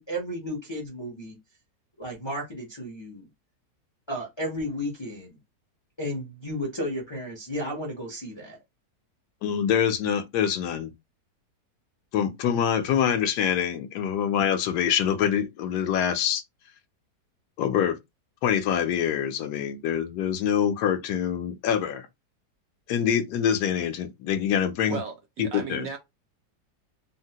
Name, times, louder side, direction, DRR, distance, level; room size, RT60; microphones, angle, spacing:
voice 1, 0.0-1.4 2.0-3.3 4.1-5.4 6.0-8.6, equal, 35° left, 0.4 m, -33 dB
voice 2, 9.4-10.9 12.1-16.4 17.6-18.0 18.4-22.1 22.9-25.0 25.4-25.9, left 8 dB, 75° left, 1.1 m, -25 dB
voice 3, 24.9-26.0, right 5 dB, 70° right, 0.8 m, -35 dB
3.8 x 2.1 x 2.7 m
omnidirectional pair, 1.8 m